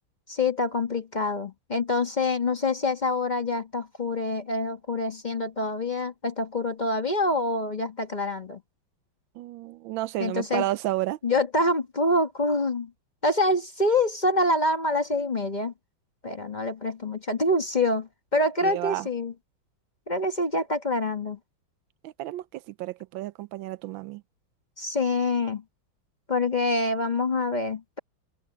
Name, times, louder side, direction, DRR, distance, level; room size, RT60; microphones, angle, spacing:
voice 1, 0.3-8.6 10.2-10.6 11.2-12.9 13.2-15.7 16.2-19.3 20.1-21.4 24.8-25.6 26.3-28.0, left 2 dB, 25° left, 1.1 m, -26 dB
voice 2, 9.3-11.2 18.6-19.1 22.0-24.2, right 15 dB, 80° right, 1.3 m, -31 dB
omnidirectional pair, 2.2 m